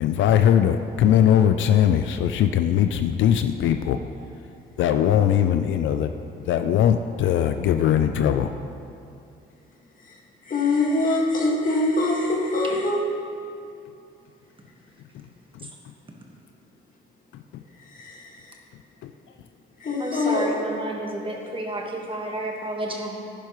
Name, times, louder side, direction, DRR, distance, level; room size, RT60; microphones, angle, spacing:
voice 1, 0.0-4.0 4.8-6.1 6.4-8.5 15.6-15.7 19.0-19.1, left 10 dB, 75° left, 8 dB, 0.4 m, -20 dB
voice 2, 10.5-13.0 17.8-18.6 19.8-20.5, left 2 dB, 45° left, -2 dB, 1.9 m, -24 dB
voice 3, 20.0-23.2, right 1 dB, 25° right, 0 dB, 1.5 m, -31 dB
10.5 x 10.5 x 3.1 m, 2.5 s
cardioid pair, 90°, 20 cm